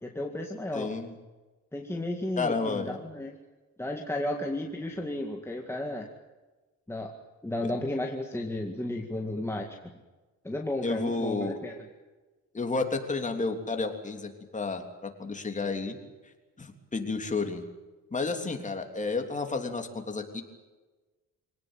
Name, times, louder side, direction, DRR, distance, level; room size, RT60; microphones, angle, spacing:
voice 1, 0.0-0.9 1.7-3.4 3.8-6.1 6.9-7.1 7.4-9.9 10.4-11.8, left 1 dB, 10° left, 1 dB, 2.1 m, -33 dB
voice 2, 0.7-1.1 2.4-3.0 7.6-7.7 10.8-11.5 12.5-16.0 16.6-17.6 18.1-20.4, left 3 dB, 25° left, 4 dB, 3.4 m, -31 dB
26.0 x 18.0 x 9.1 m, 1.2 s
cardioid pair, 130°, 32 cm